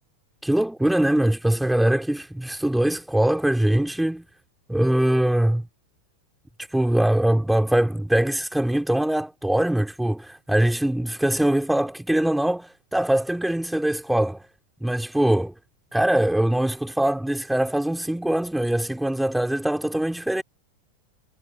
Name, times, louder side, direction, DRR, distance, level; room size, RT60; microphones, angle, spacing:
voice 1, 0.4-4.2 4.7-5.6 6.6-14.4 14.8-15.5 15.9-20.4, right 1 dB, 5° right, 4.3 m, -22 dB
figure-of-eight pair, 90°, 0 cm